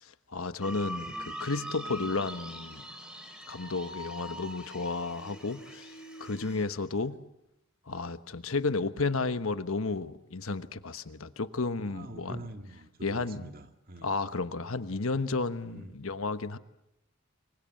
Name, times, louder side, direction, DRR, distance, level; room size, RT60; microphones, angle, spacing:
voice 1, 0.0-2.8 3.5-5.9 6.2-7.2 7.9-12.4 13.0-13.4 14.0-16.6, left 3 dB, 75° left, 11 dB, 1.2 m, -32 dB
sound 1, 0.6-6.6, equal, 5° right, 3.7 m, -42 dB
voice 2, 11.8-14.1 15.7-16.0, right 1 dB, 40° right, 6 dB, 1.8 m, -46 dB
25.0 x 24.0 x 7.7 m, 0.86 s
head